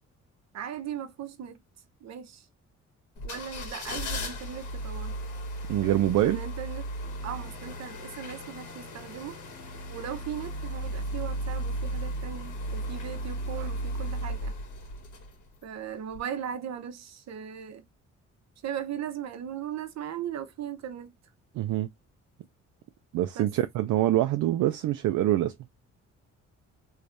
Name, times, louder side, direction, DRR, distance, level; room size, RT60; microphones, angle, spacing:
voice 1, 0.5-1.6 2.0-2.5 3.2-5.2 6.2-6.8 7.2-9.4 9.9-14.5 15.6-17.8 18.6-21.1 23.3-23.5, right 9 dB, 60° right, 0.9 m, -38 dB
sound 1, 3.2-15.6 16.1-16.2, right 1 dB, 75° left, 1.6 m, -35 dB
voice 2, 5.7-6.4 13.6-13.7 21.5-21.9 23.1-25.6, right 13 dB, 75° right, 0.5 m, -25 dB
3.3 x 3.2 x 2.5 m
cardioid pair, 90°, 30 cm